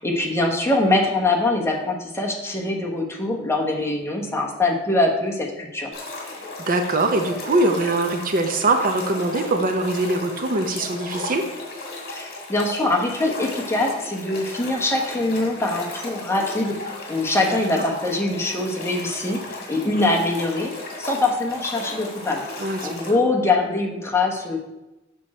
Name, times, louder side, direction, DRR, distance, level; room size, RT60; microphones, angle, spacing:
voice 1, 0.0-5.9 12.1-20.7 21.0-22.4 22.8-24.6, left 2 dB, 15° left, 0 dB, 1.1 m, -23 dB
sound 1, 5.9-23.1, left 2 dB, 55° left, 2.1 m, -35 dB
voice 2, 6.7-11.4 17.5-17.8 22.6-23.1, right 2 dB, 45° right, 6 dB, 0.6 m, -22 dB
6.9 x 6.1 x 4.3 m, 0.98 s
head